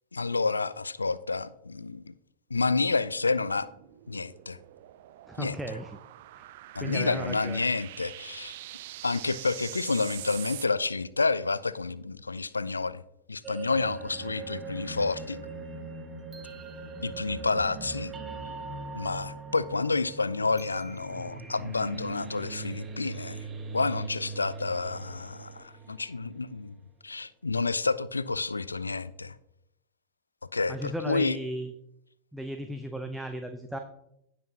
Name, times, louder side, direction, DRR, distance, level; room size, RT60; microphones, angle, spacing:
voice 1, 0.1-2.1 2.5-3.7 4.1-4.6 5.4-5.6 6.7-8.6 9.0-13.0 13.3-15.4 17.0-18.1 18.9-23.5 23.7-26.8 27.0-29.4 30.5-31.4, left 3 dB, 80° left, 0.3 m, -29 dB
sound 1, 3.1-10.7, right 15 dB, 55° right, 0.4 m, -44 dB
voice 2, 5.3-6.0 6.4-6.5 6.8-7.6 30.7-31.7 32.3-33.8, equal, 5° right, 0.7 m, -35 dB
sound 2, 13.4-26.4, right 4 dB, 20° right, 1.2 m, -40 dB
17.0 x 6.0 x 2.8 m
figure-of-eight pair, 90°, 0 cm